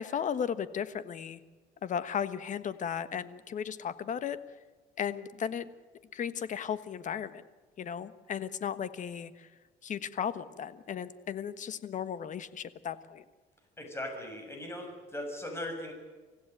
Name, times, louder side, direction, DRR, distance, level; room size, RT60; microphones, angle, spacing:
voice 1, 0.0-1.4 1.8-4.4 5.0-5.7 6.1-7.4 7.8-9.5 9.8-13.2, left 8 dB, 50° left, 13 dB, 1.4 m, -35 dB
voice 2, 13.8-15.9, left 1 dB, 15° left, 4 dB, 6.6 m, -39 dB
25.5 x 16.0 x 9.2 m, 1.3 s
cardioid pair, 110°, 17 cm